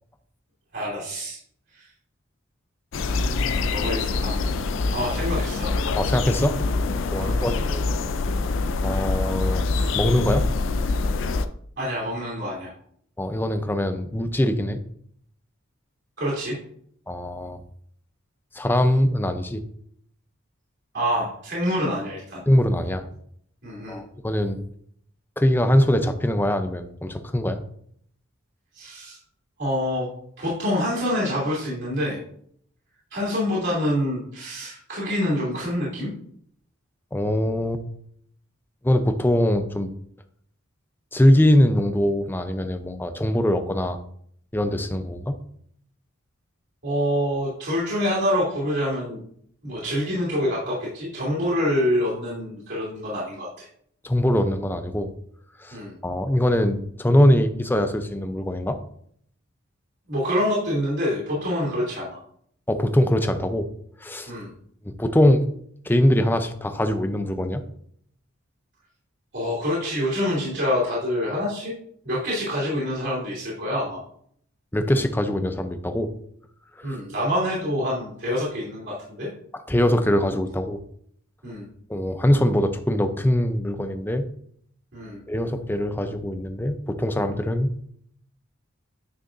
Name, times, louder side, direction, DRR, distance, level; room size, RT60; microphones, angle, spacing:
voice 1, 0.7-1.4 1.7-1.9 3.2-4.4 4.9-5.7 7.1-7.5 11.8-12.7 16.2-16.6 20.9-22.4 23.6-24.0 28.7-29.2 29.6-30.1 30.4-32.2 33.1-36.1 46.8-49.2 49.6-53.7 55.7-56.0 60.1-62.1 64.3-64.5 69.3-71.7 72.0-74.0 76.8-79.3 81.4-81.7 84.9-85.2, equal, 55° right, -7 dB, 2.7 m, -26 dB
sound 1, 2.9-11.5, left 3 dB, 60° left, 0.5 m, -25 dB
voice 2, 6.0-6.6 7.1-7.9 8.8-9.6 10.0-10.5 13.2-14.8 17.1-17.6 18.5-19.6 22.5-23.1 23.9-24.6 25.4-27.6 37.1-37.8 38.8-39.9 41.1-44.0 44.5-45.4 54.0-55.1 55.6-55.8 56.0-58.8 62.7-63.7 64.0-64.3 64.8-65.4 65.9-67.6 74.7-76.1 76.8-77.0 79.7-80.8 81.9-84.2 85.3-87.7, left 1 dB, 10° left, 8 dB, 0.5 m, -22 dB
9.4 x 6.3 x 2.6 m, 0.65 s
head